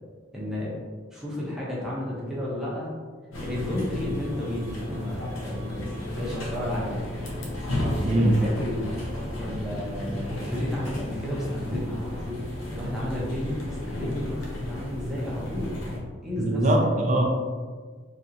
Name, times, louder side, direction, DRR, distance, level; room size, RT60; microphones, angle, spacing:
voice 1, 0.3-0.7 1.1-2.9 3.4-5.8 6.2-7.0 8.0-8.9 9.4-12.4 12.7-15.7 16.2-16.7, left 1 dB, ahead, -7 dB, 0.7 m, -32 dB
sound 1, 3.3-16.0, left 1 dB, 90° left, 0.7 m, -33 dB
voice 2, 8.0-8.3 16.4-17.2, right 1 dB, 35° right, 1 dB, 0.3 m, -21 dB
3.3 x 2.7 x 2.7 m, 1.5 s
head